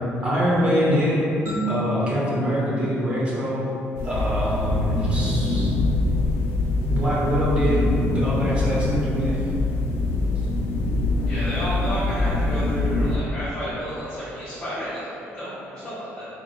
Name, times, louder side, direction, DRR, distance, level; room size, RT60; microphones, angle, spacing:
voice 1, 0.2-1.2 1.7-3.6 4.0-5.7 6.9-9.4, equal, 25° right, -7 dB, 0.9 m, -24 dB
sound 1, 1.5-4.1, left 1 dB, 55° right, 1.5 m, -33 dB
roomtone ice-cream truck, 4.0-13.2, left 2 dB, 90° left, 0.5 m, -24 dB
voice 2, 4.1-4.4 11.2-16.3, equal, 15° left, -13 dB, 1.1 m, -32 dB
4.6 x 3.7 x 2.2 m, 2.8 s
cardioid pair, 165°, 5 cm